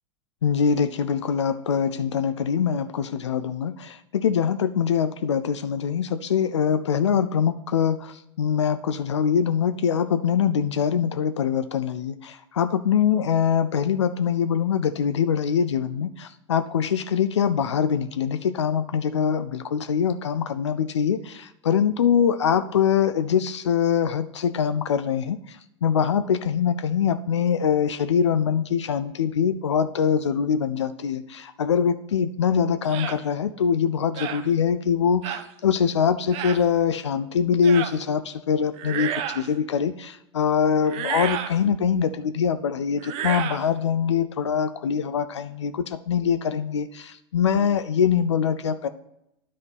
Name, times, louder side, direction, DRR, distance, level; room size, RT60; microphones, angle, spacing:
voice 1, 0.4-48.9, left 7 dB, 85° left, 11 dB, 0.4 m, -23 dB
sound 1, 32.9-33.2 34.2-34.5 35.2-35.5 36.3-36.6 37.6-38.0 38.7-39.5 40.8-41.6 43.0-43.7, right 9 dB, 50° right, 0.8 m, -30 dB
9.9 x 3.6 x 6.1 m, 0.83 s
hypercardioid pair, 90°, 14 cm